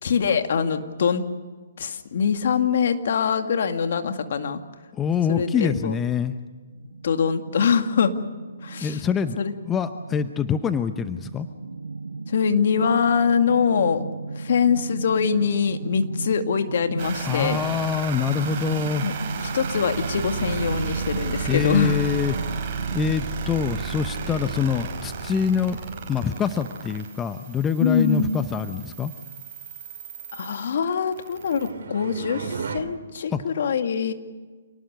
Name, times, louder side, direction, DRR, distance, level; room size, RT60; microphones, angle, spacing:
voice 1, 0.0-1.3 1.8-4.6 5.3-5.9 7.0-8.1 8.6-9.0 9.4-9.5 12.3-14.1 14.4-17.6 19.0-19.1 19.4-22.0 27.8-28.3 30.3-34.1, left 6 dB, 60° left, 7 dB, 2.1 m, -23 dB
voice 2, 4.9-6.3 8.8-9.4 9.6-11.5 17.3-19.1 21.5-22.4 22.9-25.8 26.1-29.1 33.3-33.4, left 7 dB, 15° left, 10 dB, 0.9 m, -25 dB
sound 1, 6.7-23.2, right 4 dB, 85° right, 0.9 m, -35 dB
sound 2, 17.0-31.7, right 6 dB, 40° right, 5.6 m, -34 dB
sound 3, 30.9-32.8, right 6 dB, 65° right, 2.9 m, -35 dB
28.5 x 19.0 x 6.6 m, 1.4 s
hypercardioid pair, 135°, 0 cm